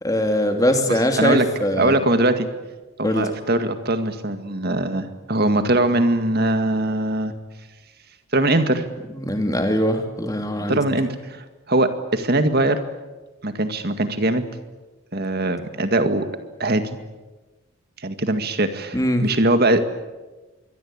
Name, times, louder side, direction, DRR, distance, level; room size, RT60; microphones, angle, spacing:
voice 1, 0.0-1.9 3.0-3.3 9.2-10.8 18.9-19.2, equal, 15° left, 5 dB, 2.8 m, -21 dB
voice 2, 0.9-1.5 1.8-2.5 3.0-7.3 8.3-8.9 10.7-12.8 13.4-14.4 15.1-16.3 16.6-17.0 18.0-19.8, right 1 dB, 45° right, 8 dB, 2.0 m, -21 dB
26.0 x 22.5 x 8.8 m, 1.2 s
head